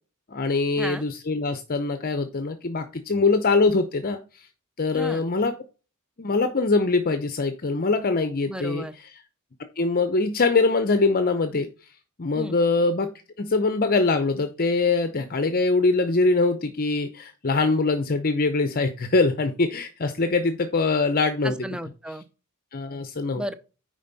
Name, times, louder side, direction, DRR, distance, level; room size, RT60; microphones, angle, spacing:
voice 1, 0.3-4.2 4.8-5.5 6.2-8.8 9.8-11.7 12.2-13.1 13.4-21.6 22.7-23.4, left 3 dB, 45° left, 0.7 m, -23 dB
voice 2, 4.9-5.2 8.5-8.9 12.3-12.6 21.4-22.2 23.3-23.5, right 1 dB, 5° right, 0.6 m, -33 dB
9.1 x 5.2 x 4.0 m
head